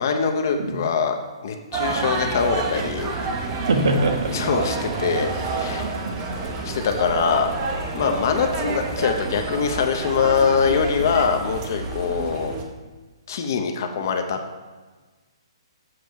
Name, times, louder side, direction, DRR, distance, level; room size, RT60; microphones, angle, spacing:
voice 1, 0.0-3.1 4.3-5.9 6.6-7.5 7.9-12.5 13.3-14.4, left 6 dB, 40° left, 6 dB, 0.7 m, -23 dB
sound 1, 1.7-12.6, right 3 dB, 20° right, 0.7 m, -28 dB
voice 2, 3.7-4.3 5.8-6.2, right 2 dB, 75° right, 4 dB, 1.2 m, -23 dB
7.5 x 5.3 x 4.7 m, 1.3 s
hypercardioid pair, 175°, 3 cm